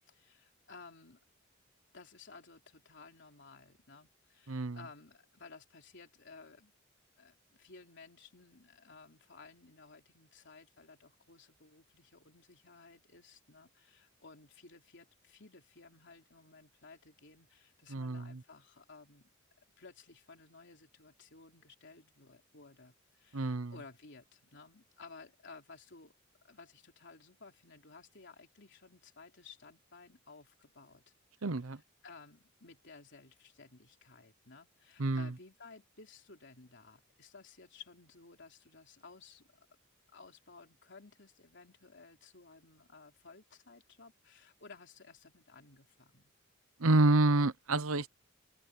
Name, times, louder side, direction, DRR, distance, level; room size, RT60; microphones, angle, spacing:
voice 1, 0.1-1.2 1.9-6.7 7.2-19.3 19.8-26.1 26.4-31.0 32.0-39.5 40.1-46.3, left 4 dB, 60° left, 3.7 m, -56 dB
voice 2, 4.5-4.8 17.9-18.4 23.3-23.7 31.4-31.8 35.0-35.3 46.8-48.1, right 2 dB, 90° right, 0.9 m, -28 dB
open air
head